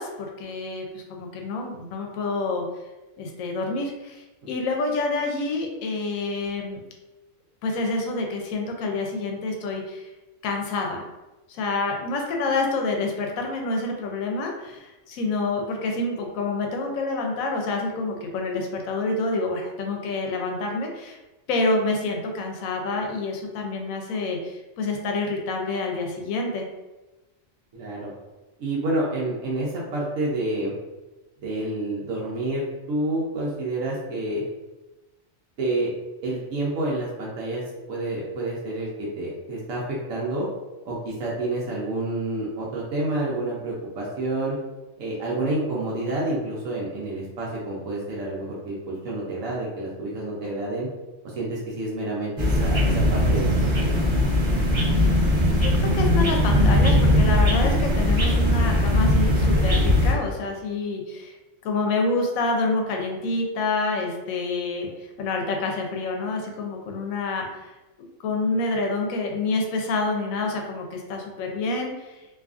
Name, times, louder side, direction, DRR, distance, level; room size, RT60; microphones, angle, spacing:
voice 1, 0.0-2.6 3.2-6.8 7.6-10.1 10.4-11.0 11.5-21.2 21.5-26.7 54.9-61.3 61.6-67.7 68.2-72.2, left 3 dB, 85° left, 2 dB, 1.0 m, -28 dB
voice 2, 27.7-28.1 28.6-30.7 31.4-34.4 35.6-35.9 36.2-37.6 37.9-40.5 40.8-44.6 45.0-50.9 51.2-53.9, right 2 dB, 90° right, -5 dB, 1.1 m, -28 dB
sound 1, 52.4-60.1, left 1 dB, 30° right, 0.6 m, -20 dB
2.7 x 2.4 x 2.3 m, 1.1 s
omnidirectional pair, 1.4 m